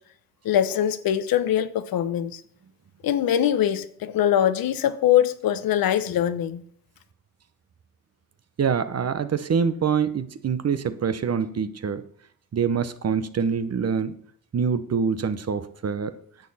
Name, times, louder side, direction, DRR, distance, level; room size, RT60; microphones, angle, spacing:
voice 1, 0.4-2.4 3.0-6.6, left 10 dB, 75° left, 0.9 m, -22 dB
voice 2, 8.6-12.0 12.5-14.1 14.5-16.1, right 6 dB, 45° right, 0.9 m, -25 dB
11.0 x 7.5 x 4.2 m
cardioid pair, 75°, 35 cm